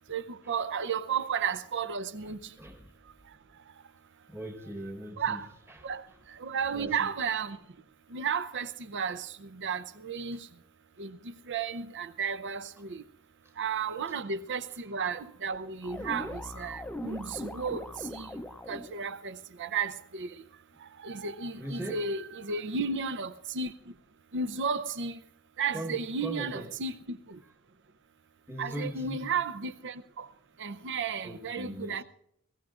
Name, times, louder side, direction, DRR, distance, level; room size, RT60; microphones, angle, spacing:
voice 1, 0.5-2.4 5.2-5.4 5.8-6.0 6.4-7.6 8.1-9.2 9.6-10.4 11.0-11.1 11.5-12.6 13.6-16.3 16.6-17.8 18.1-18.3 18.7-19.3 19.6-19.9 20.2-20.3 21.0-23.7 24.3-25.1 25.6-27.2 28.6-29.9 30.6-32.0, right 5 dB, 55° right, 0.7 m, -33 dB
voice 2, 2.2-2.9 4.3-6.2 6.5-7.1 10.3-10.4 12.8-12.9 13.4-13.5 14.0-14.2 14.7-15.3 16.0-16.1 19.0-19.2 21.6-22.1 25.7-26.8 27.4-27.5 28.5-29.4 31.2-32.0, right 1 dB, 10° right, 1.3 m, -41 dB
sound 1, 15.8-19.0, left 1 dB, 5° left, 0.6 m, -40 dB
21.0 x 17.5 x 2.5 m
head